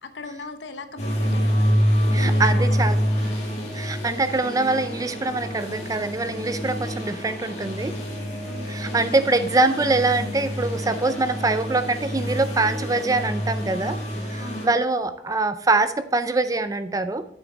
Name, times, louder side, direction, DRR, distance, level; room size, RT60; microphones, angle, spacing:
voice 1, 0.0-3.3 8.4-9.2 14.4-14.9, left 2 dB, 75° left, 8 dB, 1.0 m, -39 dB
sound 1, 1.0-14.7, equal, 35° left, 2.1 m, -26 dB
voice 2, 2.1-3.0 3.7-7.9 8.7-14.0 14.2-17.3, right 3 dB, 20° right, 11 dB, 0.4 m, -24 dB
8.0 x 7.1 x 4.0 m, 0.76 s
head